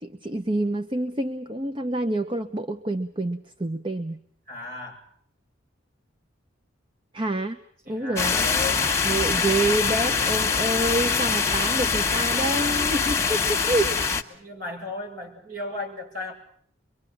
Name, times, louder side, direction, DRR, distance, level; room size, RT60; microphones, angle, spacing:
voice 1, 0.0-4.2 7.1-7.6 7.9-8.5 9.0-13.9, right 1 dB, 25° right, 9 dB, 1.0 m, -27 dB
voice 2, 4.5-5.0 7.9-8.9 14.3-16.3, left 2 dB, 45° right, 2 dB, 7.7 m, -35 dB
sound 1, 8.2-14.2, left 5 dB, 15° left, 1.5 m, -24 dB
25.0 x 24.0 x 7.3 m, 0.62 s
head